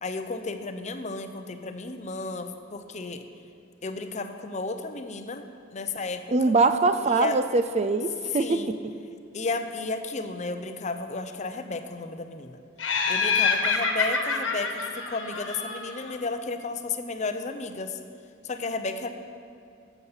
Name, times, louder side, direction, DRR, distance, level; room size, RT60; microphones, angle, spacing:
voice 1, 0.0-3.2 3.8-6.5 7.1-7.4 8.3-8.7 9.3-12.6 13.1-18.0 18.4-19.1, left 3 dB, 35° left, 8 dB, 0.6 m, -33 dB
voice 2, 6.3-8.8, right 3 dB, 35° right, 10 dB, 0.4 m, -23 dB
Laughter, 12.8-16.1, left 4 dB, 80° left, 1.3 m, -27 dB
12.5 x 8.1 x 5.6 m, 2.4 s
head